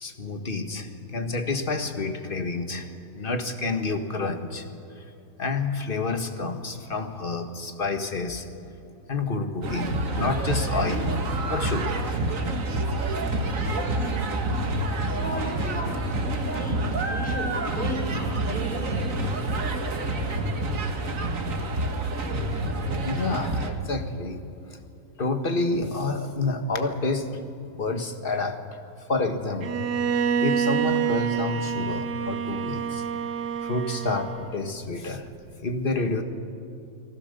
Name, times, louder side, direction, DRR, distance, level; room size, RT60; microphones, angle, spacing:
voice 1, 0.0-2.9 3.1-4.6 5.4-8.4 9.1-11.1 11.5-12.0 23.0-24.4 25.2-27.4 27.7-28.6 29.1-29.9 30.4-33.0 33.6-35.3 35.6-36.2, left 3 dB, 35° left, 6 dB, 1.6 m, -28 dB
sound 1, 9.6-23.7, right 2 dB, 55° right, 2.0 m, -28 dB
voice 2, 13.2-14.7 15.1-19.0, left 1 dB, 5° left, 0 dB, 5.0 m, -35 dB
Bowed string instrument, 29.6-34.6, right 7 dB, 80° right, 1.7 m, -27 dB
29.5 x 19.0 x 6.8 m, 2.7 s
omnidirectional pair, 1.7 m